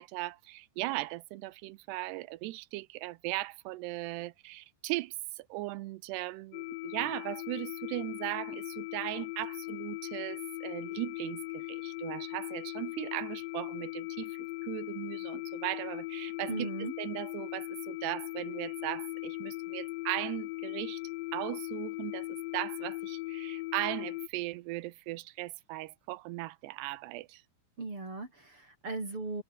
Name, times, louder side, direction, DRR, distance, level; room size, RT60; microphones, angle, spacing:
voice 1, 0.0-16.7 17.0-21.0 21.3-27.4, right 19 dB, 85° right, 2.3 m, -38 dB
sound 1, 6.5-24.3, left 20 dB, 85° left, 2.5 m, -39 dB
voice 2, 16.5-16.9 27.8-29.4, right 3 dB, 25° right, 6.2 m, -37 dB
omnidirectional pair, 5.8 m